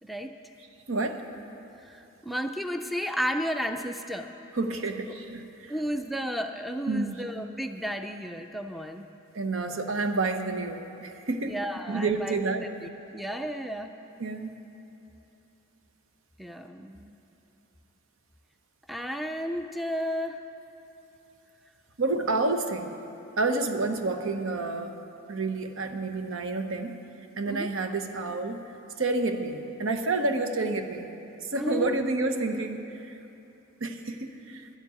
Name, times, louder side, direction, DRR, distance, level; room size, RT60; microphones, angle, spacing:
voice 1, 0.0-0.4 1.8-4.3 5.7-9.1 11.4-12.4 12.8-13.9 16.4-17.2 18.9-20.4 27.5-27.7 31.5-31.9, equal, ahead, 6 dB, 0.4 m, -33 dB
voice 2, 0.9-1.2 4.5-5.8 6.9-7.2 9.3-11.5 11.9-12.6 14.2-14.6 22.0-22.9 23.4-25.0 25.3-27.0 27.4-28.6 29.0-31.1 31.4-33.1 33.8-34.7, right 3 dB, 80° right, 6 dB, 0.8 m, -29 dB
11.5 x 7.4 x 9.4 m, 3.0 s
head